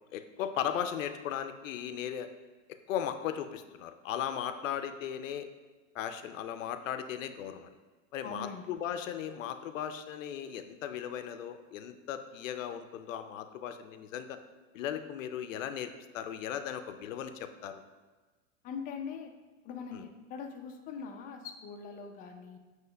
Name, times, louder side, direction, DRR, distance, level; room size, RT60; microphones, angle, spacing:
voice 1, 0.1-2.3 2.9-5.5 5.9-7.7 8.1-14.4 14.7-17.7 19.9-20.0, left 9 dB, 75° left, 9 dB, 0.5 m, -37 dB
voice 2, 8.2-8.6 18.6-19.3 19.6-22.6, left 6 dB, 25° left, 4 dB, 0.4 m, -42 dB
7.5 x 3.1 x 2.2 m, 1.3 s
hypercardioid pair, 110°, 39 cm